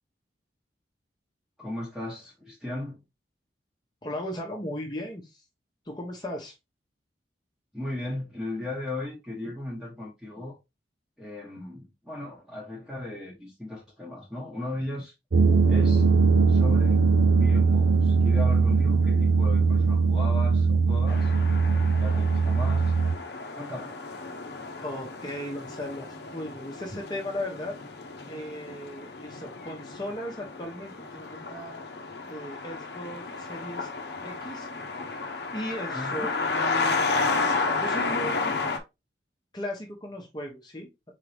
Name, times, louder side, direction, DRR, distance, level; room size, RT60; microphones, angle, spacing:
voice 1, 1.6-3.0 7.7-10.6 11.2-15.1 15.6-16.1 16.5-17.1 17.3-21.3 21.9-22.9 23.5-23.9 35.9-36.3, left 1 dB, 5° right, 1.0 m, -36 dB
voice 2, 4.0-5.4 5.9-6.5 24.8-27.8 28.3-31.8 32.3-33.9 34.2-34.7 35.5-37.1 37.8-38.5 39.5-40.9, left 1 dB, 25° left, 0.9 m, -36 dB
sound 1, 15.3-23.2, right 4 dB, 65° right, 0.5 m, -21 dB
sound 2, 21.1-38.8, left 3 dB, 65° left, 0.8 m, -32 dB
4.1 x 3.7 x 3.3 m
head